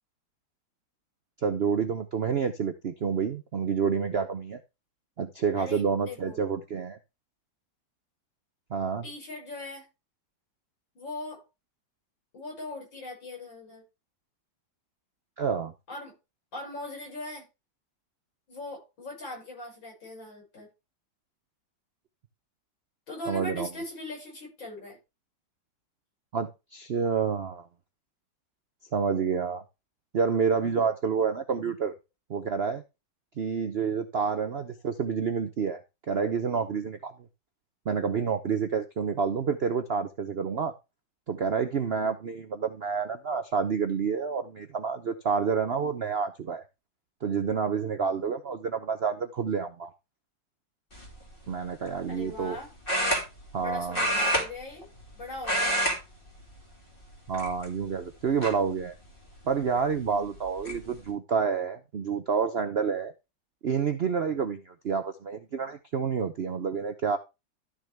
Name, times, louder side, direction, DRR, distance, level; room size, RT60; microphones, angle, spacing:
voice 1, 1.4-4.6 5.2-7.0 8.7-9.1 15.4-15.7 23.3-23.7 26.3-27.7 28.9-29.6 30.1-31.9 32.3-32.8 33.4-35.8 36.1-37.1 37.9-40.7 41.3-46.6 47.2-49.9 51.5-52.6 53.5-54.0 57.3-58.9 59.5-63.1 63.6-67.2, right 6 dB, 65° right, 0.6 m, -28 dB
voice 2, 5.6-6.4 9.0-9.9 10.9-11.5 12.3-13.8 15.9-16.1 16.5-17.4 18.5-20.7 23.1-25.0 52.1-52.7 53.6-54.8 55.1-55.8, left 2 dB, 85° left, 6.6 m, -40 dB
sound 1, 50.9-51.2 52.9-53.6 53.9-55.1 55.4-56.0 56.3-56.5 57.3-57.9 58.4-58.5 60.0-60.1 60.4-60.8, equal, 30° left, 3.1 m, -27 dB
13.0 x 6.4 x 3.4 m
omnidirectional pair, 2.0 m